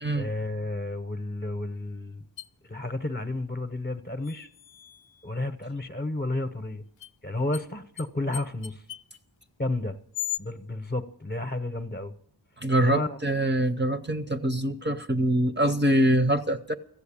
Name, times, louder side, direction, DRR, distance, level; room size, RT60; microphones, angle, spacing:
voice 1, 0.1-2.2 2.6-4.5 5.2-6.8 7.2-8.8 9.6-10.0 10.4-12.1 12.8-13.2, left 2 dB, 20° left, 0.9 m, -31 dB
sound 1, 2.4-2.5 4.2-5.3 7.0-7.1 7.5-7.6 8.0-8.1 8.3-9.2 10.1-10.4, left 13 dB, 90° left, 0.5 m, -37 dB
voice 2, 12.6-16.7, right 1 dB, 25° right, 0.7 m, -24 dB
14.5 x 8.0 x 8.6 m
wide cardioid pair, 65°, 44 cm